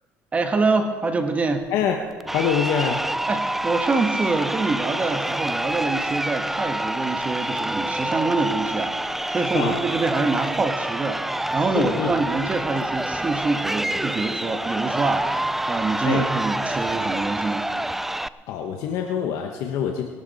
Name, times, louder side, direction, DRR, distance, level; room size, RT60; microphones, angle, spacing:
voice 1, 0.3-1.7 3.3-15.4 15.7-17.6, right 3 dB, 25° right, 6 dB, 1.3 m, -25 dB
voice 2, 1.7-2.0 2.3-3.0 9.5-9.8 11.7-12.1 16.0-16.3 18.5-20.0, left 8 dB, 75° left, 3 dB, 1.1 m, -24 dB
Crowd, 2.2-18.3, right 1 dB, 5° right, 0.3 m, -27 dB
20.5 x 12.5 x 4.1 m, 1.5 s
cardioid pair, 120°, 6 cm